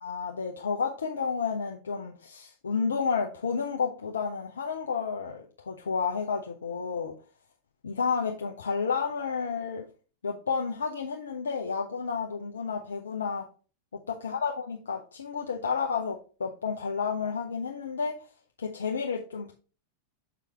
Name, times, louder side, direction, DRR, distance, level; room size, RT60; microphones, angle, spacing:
voice 1, 0.0-7.1 7.8-9.8 10.2-13.5 13.9-18.2 18.6-19.5, left 5 dB, 70° left, 1 dB, 0.7 m, -31 dB
6.9 x 4.6 x 3.5 m, 0.36 s
figure-of-eight pair, 90°, 0 cm